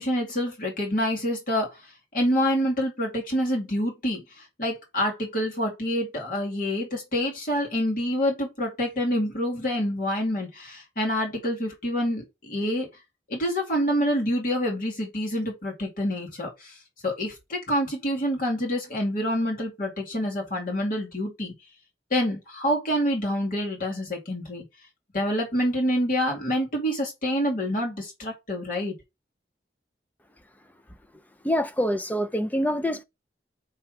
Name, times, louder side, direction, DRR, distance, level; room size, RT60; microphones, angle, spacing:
voice 1, 0.0-1.7 2.1-12.9 13.3-16.7 17.0-21.5 22.1-24.6 25.1-29.0, equal, 55° left, 2.3 m, -27 dB
voice 2, 31.4-33.0, equal, 10° left, 0.4 m, -25 dB
5.7 x 3.4 x 4.7 m
head